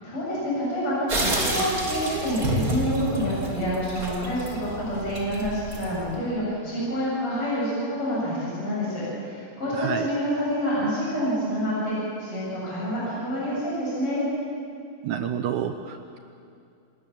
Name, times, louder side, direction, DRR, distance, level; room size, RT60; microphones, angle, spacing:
voice 1, 0.0-14.3, equal, 35° left, -7 dB, 8.7 m, -27 dB
sound 1, 1.1-6.2, right 1 dB, 25° right, 2.9 m, -29 dB
voice 2, 9.7-10.1 15.0-16.2, right 9 dB, 80° right, 8 dB, 1.7 m, -29 dB
28.0 x 19.0 x 7.3 m, 2.5 s
omnidirectional pair, 4.4 m